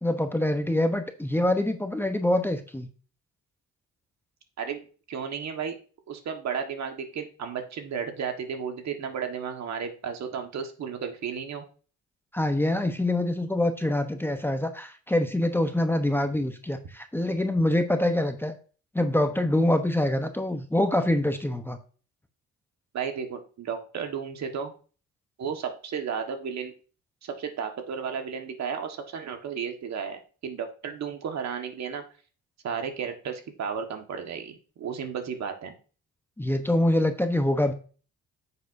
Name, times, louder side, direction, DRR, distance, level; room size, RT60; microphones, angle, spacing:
voice 1, 0.0-2.9 12.3-18.5 18.9-21.8 36.4-37.7, left 1 dB, 5° left, 6 dB, 0.8 m, -25 dB
voice 2, 5.1-5.7 6.1-11.6 22.9-24.7 25.4-26.7 27.2-32.0 32.6-35.7, right 6 dB, 65° right, 5 dB, 1.5 m, -33 dB
9.2 x 6.9 x 2.6 m, 0.38 s
cardioid pair, 90°, 30 cm